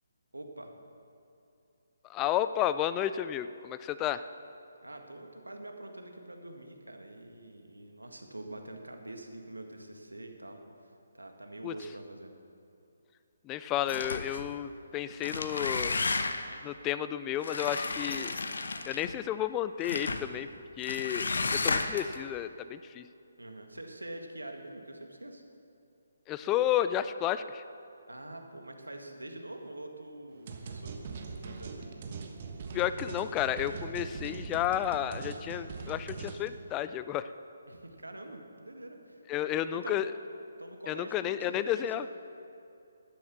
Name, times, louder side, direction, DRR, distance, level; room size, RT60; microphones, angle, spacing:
voice 1, 0.3-0.7 4.8-12.3 23.4-25.4 28.1-31.8 37.7-40.1 40.6-42.1, right 1 dB, 90° right, 4 dB, 1.7 m, -45 dB
voice 2, 2.1-4.2 11.6-11.7 13.5-16.0 16.6-18.3 18.9-20.5 20.8-21.3 21.6-23.1 26.3-27.6 32.7-37.3 39.3-40.1 40.9-42.0, left 11 dB, 20° left, 13 dB, 0.4 m, -32 dB
sound 1, 13.9-14.5 15.1-16.6 17.4-19.1 19.8-20.3 20.8-22.2, left 3 dB, 65° left, 0.9 m, -33 dB
sound 2, 30.5-36.5, right 4 dB, 40° right, 1.3 m, -41 dB
12.0 x 9.7 x 7.0 m, 2.6 s
figure-of-eight pair, 145°, 0 cm